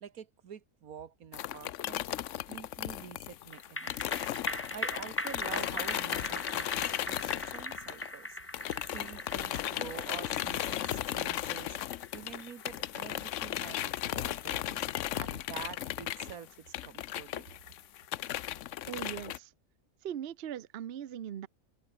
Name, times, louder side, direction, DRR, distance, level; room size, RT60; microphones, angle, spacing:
voice 1, 0.0-4.2 4.7-8.4 8.9-11.8 12.1-14.8 15.1-17.5, right 8 dB, 85° right, 1.7 m, -47 dB
sound 1, 1.3-8.2 8.5-19.4, left 13 dB, 65° left, 0.9 m, -36 dB
sound 2, 3.5-16.2 16.5-16.6, left 1 dB, 10° left, 2.1 m, -41 dB
voice 2, 18.9-19.5 20.0-21.5, right 10 dB, 50° right, 0.9 m, -40 dB
omnidirectional pair, 1.5 m